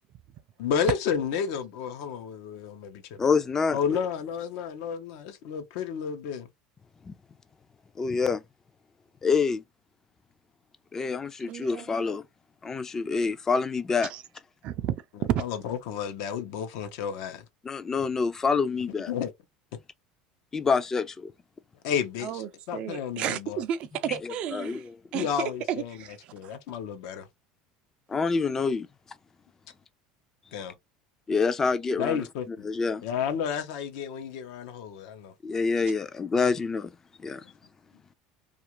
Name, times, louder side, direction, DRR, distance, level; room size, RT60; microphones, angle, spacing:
voice 1, 0.6-3.2 3.7-6.5 15.4-17.4 19.1-19.3 21.8-22.4 22.7-23.6 25.1-26.0 26.3-27.3 30.5-30.7 32.0-32.7 33.0-35.3, left 7 dB, 75° left, 0.7 m, -31 dB
voice 2, 3.2-3.8 7.0-7.1 8.0-8.4 9.2-9.6 10.9-12.2 12.6-14.1 17.6-19.1 20.5-21.3 24.2-24.9 28.1-28.9 31.3-33.0 35.4-36.9 37.2-37.4, left 5 dB, 20° left, 0.4 m, -27 dB
voice 3, 11.4-11.9 14.0-14.2 14.6-15.4 22.2-26.6, right 10 dB, 50° right, 0.4 m, -32 dB
2.4 x 2.4 x 2.9 m
supercardioid pair, 120°, 2 cm